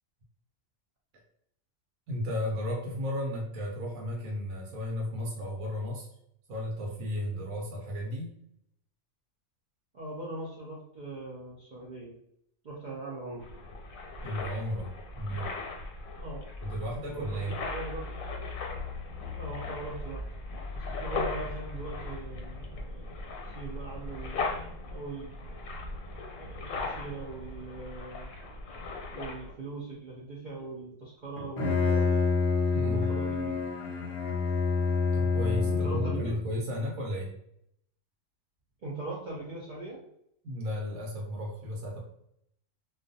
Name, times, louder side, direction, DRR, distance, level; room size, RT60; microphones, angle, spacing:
voice 1, 2.1-6.1 6.5-8.3 14.2-15.5 16.6-17.6 32.7-33.1 35.1-37.3 40.4-42.0, equal, 90° right, -1 dB, 1.0 m, -34 dB
voice 2, 9.9-12.1 12.6-13.5 16.2-16.5 17.0-18.1 19.4-20.3 20.7-22.9 23.2-25.6 26.4-28.3 29.1-32.2 32.8-33.6 35.7-36.4 38.8-40.0, right 2 dB, 65° right, -5 dB, 0.4 m, -40 dB
sound 1, 13.4-29.5, left 3 dB, 90° left, 1.0 m, -38 dB
Bowed string instrument, 31.4-36.4, left 4 dB, 65° left, 0.8 m, -27 dB
2.3 x 2.3 x 2.6 m, 0.75 s
omnidirectional pair, 1.4 m